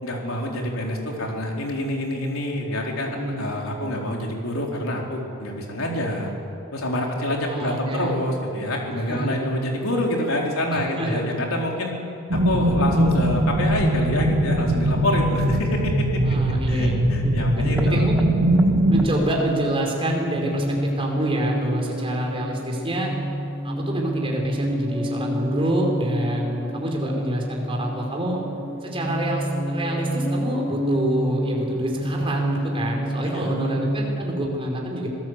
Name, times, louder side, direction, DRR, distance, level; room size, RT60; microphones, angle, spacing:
voice 1, 0.0-6.3 6.7-11.9 12.3-16.2 16.7-18.1 33.2-33.5, left 1 dB, 75° left, 0 dB, 4.1 m, -27 dB
voice 2, 3.0-3.5 7.5-8.2 9.0-9.5 10.7-11.2 16.2-16.9 17.2-18.3 18.9-23.1 23.6-28.4 28.8-35.1, right 1 dB, 25° right, 0 dB, 4.8 m, -27 dB
sound 1, 12.3-19.0, right 1 dB, 70° right, 2.4 m, -21 dB
sound 2, 17.7-34.4, equal, 10° right, 1.5 m, -29 dB
26.0 x 17.5 x 8.2 m, 2.6 s
head